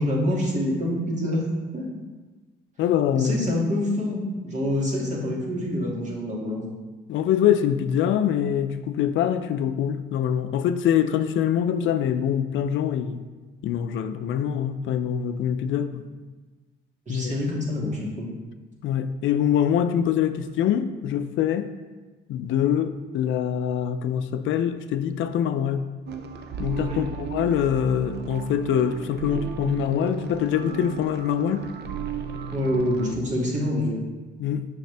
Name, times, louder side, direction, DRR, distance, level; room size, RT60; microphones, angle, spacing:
voice 1, 0.0-1.5 1.7-2.0 3.1-6.6 17.1-18.3 26.9-27.0 32.5-34.0, left 1 dB, 35° right, -4 dB, 2.1 m, -26 dB
voice 2, 2.8-3.3 7.1-13.2 13.6-16.1 17.1-17.3 18.8-21.7 22.3-25.9 26.6-31.7 34.4-34.7, left 9 dB, 80° left, 10 dB, 0.5 m, -24 dB
sound 1, 26.1-33.1, right 6 dB, 60° right, 0.6 m, -34 dB
6.4 x 5.7 x 3.3 m, 1.3 s
cardioid pair, 90°, 20 cm